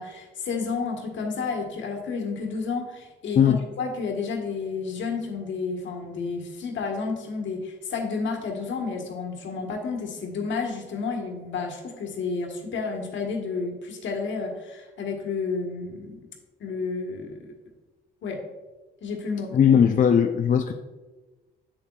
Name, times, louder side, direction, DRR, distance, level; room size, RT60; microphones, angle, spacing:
voice 1, 0.0-16.2 16.6-17.5 18.2-18.4 19.0-19.5, left 4 dB, 70° left, 2 dB, 1.4 m, -31 dB
voice 2, 19.5-20.7, left 8 dB, 40° left, 6 dB, 0.5 m, -18 dB
7.7 x 7.0 x 2.4 m, 1.2 s
supercardioid pair, 65°, 20 cm